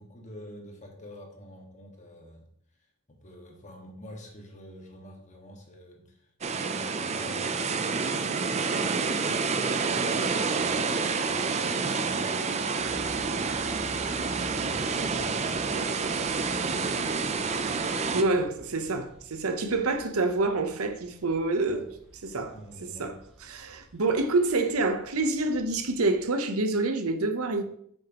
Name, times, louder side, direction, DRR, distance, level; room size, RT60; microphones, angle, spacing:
voice 1, 0.0-2.4 3.1-18.2 21.7-21.9 22.5-23.2, equal, 35° left, 1.7 m, -48 dB
sound 1, 6.4-18.2, right 4 dB, 30° right, 0.5 m, -28 dB
sound 2, 12.8-26.2, equal, ahead, 2.0 m, -50 dB
voice 2, 18.1-21.9 22.2-22.5 22.8-23.2 23.4-27.6, right 3 dB, 85° right, 0.9 m, -27 dB
8.9 x 6.3 x 3.0 m
head